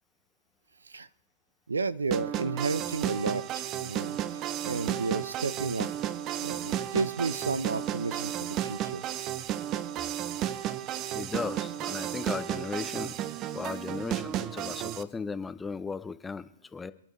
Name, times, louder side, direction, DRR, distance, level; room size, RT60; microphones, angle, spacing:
voice 1, 1.7-5.9 6.4-9.0, right 4 dB, 85° right, 16 dB, 0.7 m, -32 dB
sound 1, 2.1-15.0, right 11 dB, 30° right, 0.8 m, -33 dB
voice 2, 11.1-13.2 13.5-16.9, left 4 dB, 10° left, 14 dB, 0.7 m, -36 dB
27.5 x 11.0 x 3.2 m, 0.76 s
hypercardioid pair, 120°, 0 cm